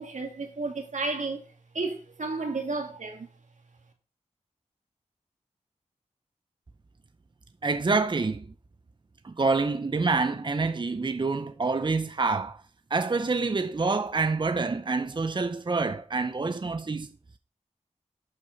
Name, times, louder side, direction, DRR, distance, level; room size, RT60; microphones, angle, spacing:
voice 1, 0.0-1.4 1.7-3.3, right 3 dB, 75° right, 2.5 m, -32 dB
voice 2, 7.6-8.5 9.2-12.6 12.9-17.1, right 3 dB, 40° right, 0.7 m, -27 dB
11.5 x 6.1 x 5.3 m
wide cardioid pair, 70°, 13 cm